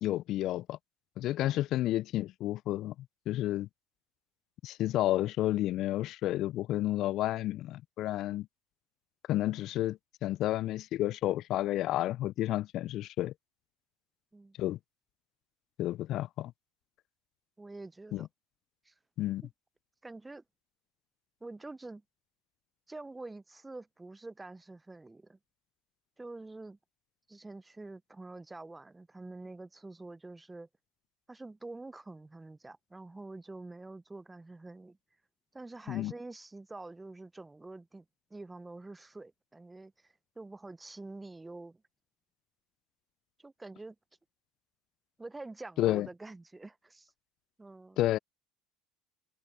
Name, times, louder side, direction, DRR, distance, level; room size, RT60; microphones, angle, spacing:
voice 1, 0.0-0.8 1.2-2.9 3.3-3.7 4.6-8.5 9.3-13.3 14.6-14.8 15.8-16.5 18.1-18.3 19.2-19.4 35.9-36.1 45.8-46.1 48.0-48.2, left 14 dB, 55° left, 0.5 m, -31 dB
voice 2, 17.6-18.3 18.8-18.9 19.4-19.5 20.0-20.4 21.4-22.0 22.9-25.4 26.2-26.8 27.3-30.7 31.3-35.0 35.5-38.0 38.3-41.8 43.4-44.0 45.2-47.1 47.6-48.0, right 2 dB, 15° right, 0.8 m, -47 dB
hypercardioid pair, 75°, 0 cm